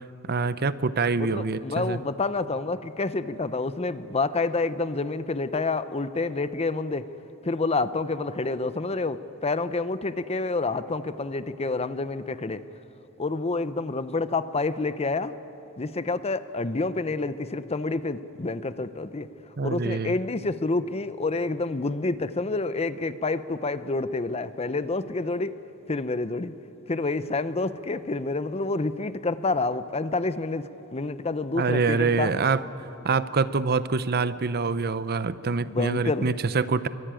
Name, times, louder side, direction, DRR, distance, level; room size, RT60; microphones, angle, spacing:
voice 1, 0.3-2.0 19.6-20.1 31.5-32.6 33.0-36.9, right 4 dB, 45° right, 14 dB, 0.7 m, -25 dB
voice 2, 1.2-7.1 7.5-12.6 13.2-15.3 15.8-19.3 19.6-25.5 25.9-26.5 26.9-30.6 30.9-32.3 35.6-36.3, left 3 dB, 30° left, 13 dB, 0.7 m, -28 dB
24.0 x 22.5 x 9.0 m, 2.9 s
head